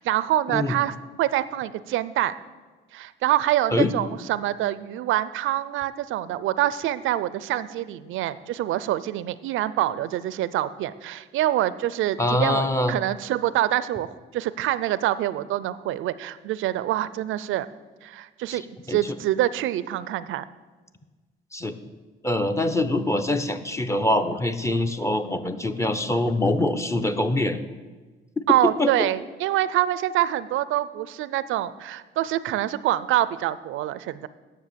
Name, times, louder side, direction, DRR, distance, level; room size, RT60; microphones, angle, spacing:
voice 1, 0.0-2.3 2.9-17.7 18.0-18.6 18.9-20.4 28.5-34.3, right 13 dB, 80° right, 16 dB, 0.5 m, -25 dB
voice 2, 12.2-13.0 18.5-18.6 18.9-19.1 21.5-21.8 22.2-27.6 28.8-29.1, left 1 dB, 15° left, 8 dB, 0.8 m, -24 dB
9.7 x 7.1 x 6.8 m, 1.3 s
cardioid pair, 90°, 20 cm